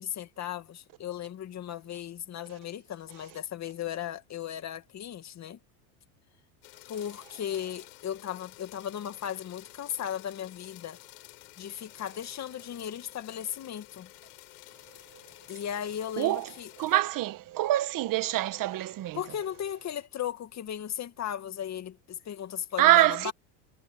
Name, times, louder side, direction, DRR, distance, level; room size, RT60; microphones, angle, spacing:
voice 1, 0.0-5.6 6.9-11.0 11.6-14.1 15.5-16.7 19.1-23.3, left 10 dB, 35° left, 2.2 m, -36 dB
sound 1, 6.6-17.0, left 20 dB, 90° left, 6.3 m, -52 dB
voice 2, 16.2-16.5 16.8-19.2 22.8-23.3, right 15 dB, 45° right, 1.4 m, -25 dB
supercardioid pair, 120°, 46 cm